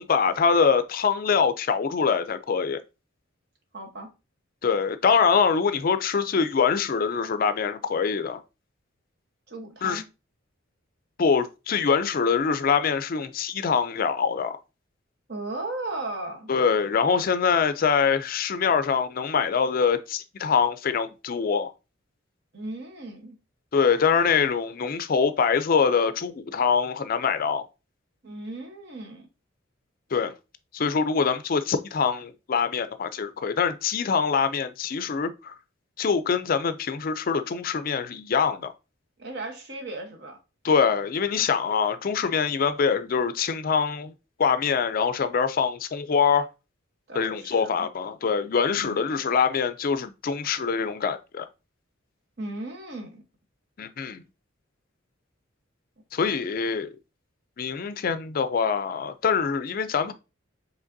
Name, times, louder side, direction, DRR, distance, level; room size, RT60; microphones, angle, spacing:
voice 1, 0.0-2.8 4.6-8.4 9.8-10.0 11.2-14.6 16.5-21.7 23.7-27.7 30.1-30.3 30.7-35.5 36.0-38.7 40.6-44.1 44.4-46.5 47.1-51.5 53.8-54.2 56.1-56.9 57.6-60.1, left 6 dB, 45° left, 0.4 m, -24 dB
voice 2, 3.7-4.1 9.5-10.1 15.3-16.5 22.5-23.4 28.2-29.3 39.2-40.4 47.1-47.9 48.8-49.0 52.4-53.2, right 2 dB, 55° right, 1.0 m, -36 dB
5.0 x 3.2 x 2.6 m
head